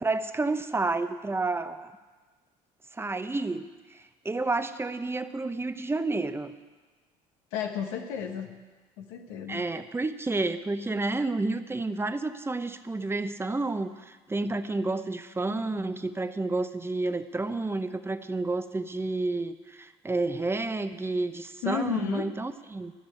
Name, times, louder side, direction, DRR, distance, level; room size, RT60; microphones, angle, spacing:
voice 1, 0.0-1.9 2.9-6.5 9.5-22.9, right 2 dB, 15° right, 10 dB, 0.8 m, -30 dB
voice 2, 7.5-8.6 9.0-9.6 21.6-22.3, left 7 dB, 85° left, 4 dB, 1.2 m, -32 dB
13.5 x 6.7 x 9.1 m, 1.3 s
supercardioid pair, 80°, 15 cm